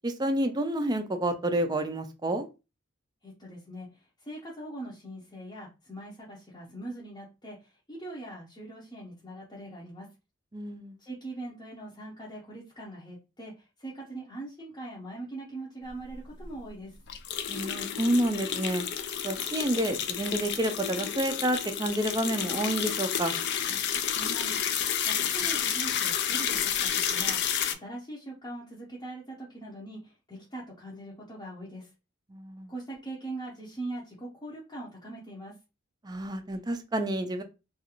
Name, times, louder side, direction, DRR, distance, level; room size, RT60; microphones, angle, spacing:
voice 1, 0.0-2.5 10.5-11.0 17.5-18.8 19.2-23.3 32.3-32.7 36.0-37.4, right 1 dB, 20° right, 6 dB, 0.4 m, -29 dB
voice 2, 3.2-3.9 4.2-10.1 11.0-17.0 24.1-24.7 25.0-31.9 32.7-35.5, right 2 dB, 20° left, -6 dB, 0.7 m, -42 dB
sound 1, 16.1-16.2 16.4-16.5 17.1-27.7, left 9 dB, 55° left, 0.3 m, -30 dB
2.5 x 2.4 x 2.9 m, 0.28 s
head